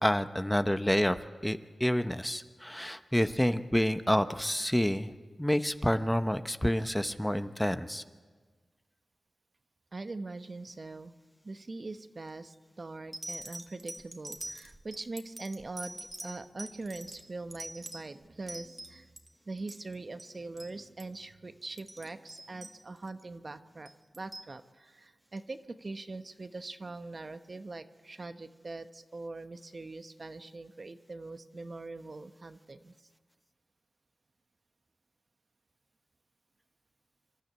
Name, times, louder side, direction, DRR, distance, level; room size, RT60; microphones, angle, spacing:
voice 1, 0.0-5.1 5.4-8.0, equal, 10° left, 10 dB, 0.9 m, -28 dB
voice 2, 9.9-11.1 11.4-19.1 19.5-23.9 24.1-32.9, right 3 dB, 50° right, 9 dB, 1.1 m, -42 dB
sound 1, 12.3-12.6 13.1-19.3 19.6-20.3 20.6-20.7 21.0-21.2 21.6-23.2 23.9-24.5 25.4-25.5, right 1 dB, 30° right, 2.0 m, -44 dB
26.5 x 12.0 x 9.2 m, 1.4 s
cardioid pair, 45°, 0 cm